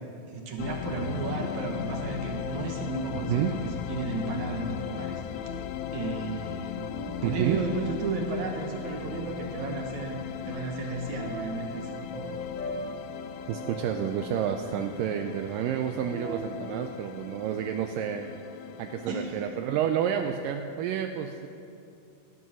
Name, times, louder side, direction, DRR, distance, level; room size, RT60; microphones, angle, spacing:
voice 1, 0.3-5.2 5.9-10.2 10.5-11.9 19.1-19.5, right 4 dB, 65° right, 2 dB, 2.2 m, -33 dB
sound 1, 0.6-19.2, left 10 dB, 90° left, 2.4 m, -37 dB
sound 2, 2.3-4.4 5.3-8.7 11.2-17.2, equal, 40° left, 3.8 m, -43 dB
voice 2, 7.2-7.6 13.5-18.3 18.8-21.5, right 9 dB, 80° right, 6 dB, 2.1 m, -29 dB
18.5 x 12.5 x 6.2 m, 2.6 s
omnidirectional pair, 4.2 m